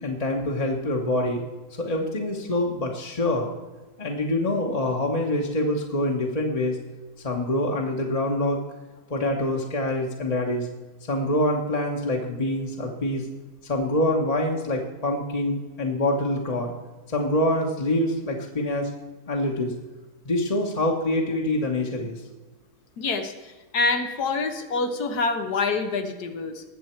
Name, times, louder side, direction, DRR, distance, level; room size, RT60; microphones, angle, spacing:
voice 1, 0.0-1.4 1.8-3.5 4.0-6.8 7.2-8.6 9.1-10.7 11.1-13.3 13.6-16.7 17.1-18.9 19.3-19.7 20.2-22.2, left 1 dB, 25° left, 0 dB, 1.2 m, -25 dB
voice 2, 23.0-23.3 23.7-26.6, left 3 dB, 80° left, 6 dB, 1.7 m, -26 dB
20.0 x 7.3 x 4.5 m, 1.2 s
omnidirectional pair, 1.6 m